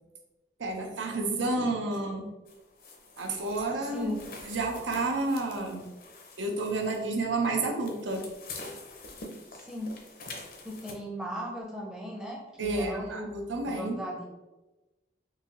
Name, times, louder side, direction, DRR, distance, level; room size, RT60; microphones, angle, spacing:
voice 1, 0.6-2.3 3.2-4.1 4.4-5.9 6.4-8.2 12.6-14.0, right 2 dB, 85° right, 3 dB, 0.6 m, -30 dB
sound 1, 2.5-10.9, left 3 dB, 50° left, 0.6 m, -46 dB
voice 2, 3.7-4.2 9.5-10.0 10.6-14.3, equal, 5° right, -2 dB, 0.5 m, -37 dB
3.9 x 2.7 x 2.9 m, 1.1 s
head